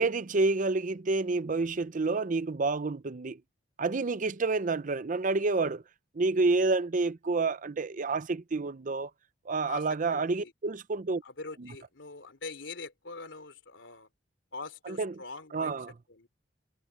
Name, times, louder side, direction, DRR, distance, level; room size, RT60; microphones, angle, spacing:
voice 1, 0.0-3.4 3.8-5.8 6.1-9.1 9.5-11.2 11.6-11.7 14.9-15.1 15.5-15.9, right 3 dB, 45° right, 0.6 m, -29 dB
voice 2, 10.1-10.5 11.2-14.1 14.5-15.8 16.1-16.3, left 3 dB, 80° left, 3.2 m, -43 dB
head